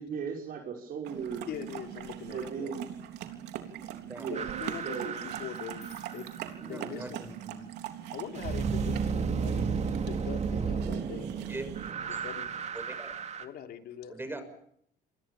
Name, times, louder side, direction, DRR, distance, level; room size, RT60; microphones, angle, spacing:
voice 1, 0.0-1.5 2.3-2.9 4.2-4.5 4.8-5.2, right 6 dB, 60° right, 1 dB, 5.6 m, -37 dB
sound 1, 1.0-11.9, right 11 dB, 85° right, 3.4 m, -42 dB
voice 2, 1.4-2.7 4.2-6.3 6.6-7.3 8.1-9.7 10.0-11.3 12.1-12.6 13.4-14.2, left 9 dB, 70° left, 6 dB, 3.3 m, -42 dB
sound 2, 1.9-2.4 4.7-5.1 5.4-7.5, left 5 dB, 40° left, 7.5 m, -61 dB
are we alone, 4.3-6.6 8.3-13.4, right 5 dB, 40° right, 2.7 m, -33 dB
voice 3, 6.6-7.7 11.5-12.3 12.7-13.1 14.1-14.4, right 2 dB, 15° right, 9 dB, 6.5 m, -42 dB
28.5 x 23.5 x 7.2 m, 0.71 s
cardioid pair, 110°, 17 cm